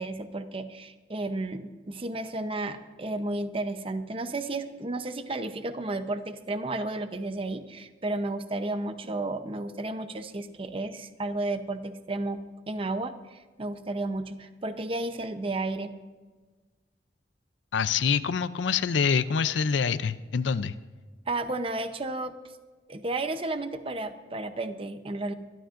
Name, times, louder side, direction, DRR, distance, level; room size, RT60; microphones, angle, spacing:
voice 1, 0.0-12.4 12.7-15.9 21.3-22.3 22.9-25.3, right 2 dB, 30° right, 9 dB, 0.7 m, -32 dB
voice 2, 17.7-20.7, left 6 dB, 85° left, 13 dB, 0.5 m, -26 dB
23.5 x 13.0 x 2.6 m, 1.3 s
head